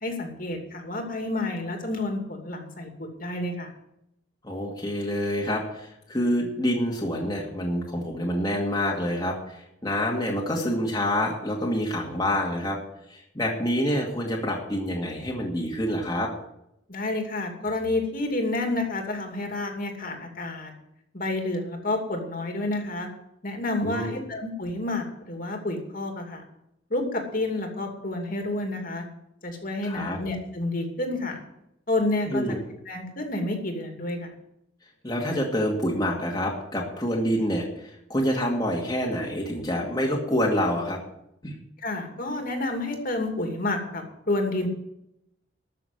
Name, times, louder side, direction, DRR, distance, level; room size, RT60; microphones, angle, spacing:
voice 1, 0.0-3.7 16.9-20.7 21.1-23.1 23.4-26.4 26.9-29.1 29.4-31.4 31.9-32.4 32.9-34.3 41.8-44.7, left 2 dB, 45° left, 3 dB, 2.6 m, -29 dB
voice 2, 4.4-12.8 13.1-16.3 23.8-24.2 29.8-30.2 32.3-32.6 35.0-41.0 41.4-41.5, equal, 20° left, -2 dB, 2.2 m, -27 dB
13.5 x 6.8 x 9.4 m, 0.79 s
head